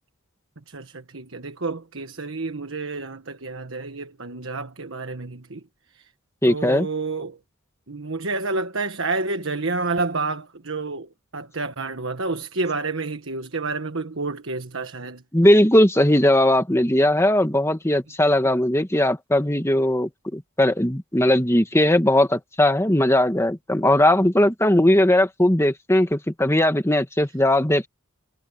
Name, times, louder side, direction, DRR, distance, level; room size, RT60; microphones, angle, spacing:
voice 1, 0.7-5.6 5.9-6.1 6.4-7.4 7.9-15.2, right 3 dB, 65° right, 1.5 m, -29 dB
voice 2, 6.4-6.9 15.3-27.9, left 1 dB, 10° left, 1.7 m, -19 dB
head